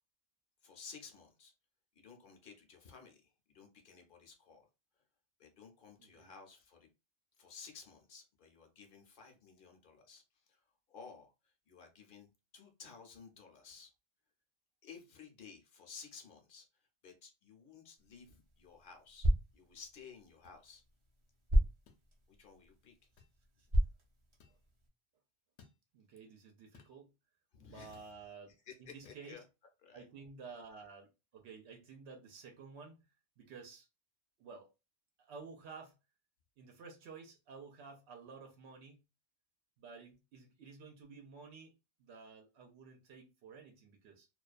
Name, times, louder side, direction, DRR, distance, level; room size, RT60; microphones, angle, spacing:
voice 1, 0.6-1.5 2.0-4.6 5.4-6.9 7.4-10.6 10.9-13.9 14.8-16.7 17.0-19.3 19.5-20.8 22.4-22.9 27.5-28.1 28.7-29.4 29.8-30.1, left 5 dB, 55° left, 0.7 m, -55 dB
voice 2, 6.0-6.3 23.6-23.7 24.5-24.6 25.9-27.1 27.6-28.5 28.8-29.3 29.9-33.0 33.4-33.9 34.4-34.7 35.2-36.0 36.6-39.0 39.8-41.7 42.0-44.3, right 5 dB, 90° right, 0.9 m, -52 dB
sound 1, 18.0-24.9, equal, 40° right, 0.5 m, -36 dB
sound 2, 20.4-20.6 21.9-22.0 23.2-23.4 24.4-24.6 25.6-25.8 26.7-27.0 27.9-28.1 29.0-29.2, left 6 dB, 85° left, 0.9 m, -62 dB
2.4 x 2.2 x 2.4 m
omnidirectional pair, 1.1 m